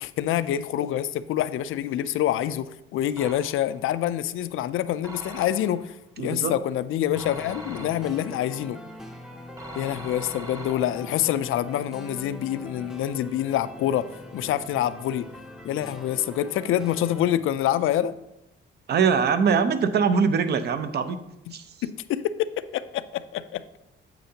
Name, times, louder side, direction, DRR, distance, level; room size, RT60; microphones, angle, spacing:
voice 1, 0.0-8.8 9.7-14.1 14.3-15.3 15.6-18.1 21.8-23.6, left 11 dB, 85° left, 14 dB, 0.4 m, -26 dB
sound 1, 3.2-3.8 5.0-5.9 7.2-8.4 9.6-11.2, right 1 dB, 20° right, 1.0 m, -42 dB
voice 2, 6.2-6.6 18.9-21.2 21.5-21.7, right 6 dB, 55° right, 10 dB, 0.6 m, -22 dB
sound 2, 7.1-17.2, equal, ahead, 0.6 m, -42 dB
9.0 x 7.7 x 2.8 m, 0.88 s
cardioid pair, 155°, 21 cm